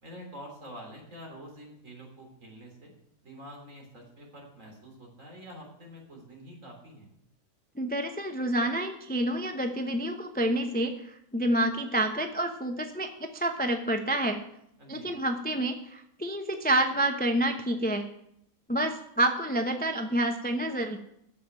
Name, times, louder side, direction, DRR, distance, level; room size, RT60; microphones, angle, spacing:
voice 1, 0.0-2.9 3.2-7.1 14.8-15.1, equal, 50° right, 0 dB, 3.7 m, -47 dB
voice 2, 7.8-14.4 14.9-18.0 18.7-21.0, right 1 dB, 10° left, 5 dB, 0.4 m, -28 dB
8.6 x 7.3 x 8.8 m, 0.76 s
omnidirectional pair, 1.7 m